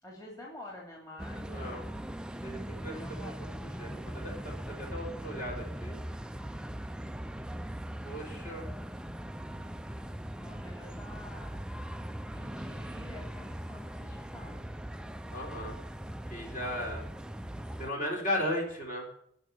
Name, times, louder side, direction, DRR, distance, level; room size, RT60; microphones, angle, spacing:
voice 1, 0.0-1.7 2.8-3.4 10.4-11.5 12.3-14.7, left 1 dB, 20° left, -2 dB, 3.0 m, -49 dB
sound 1, 1.2-17.9, equal, 5° right, 0.4 m, -40 dB
voice 2, 1.5-1.8 2.4-3.3 3.8-4.5 4.8-6.0 8.0-8.7 15.3-15.8 16.3-17.0 17.8-19.1, left 1 dB, 45° left, 0 dB, 4.0 m, -36 dB
17.0 x 5.7 x 9.9 m, 0.69 s
head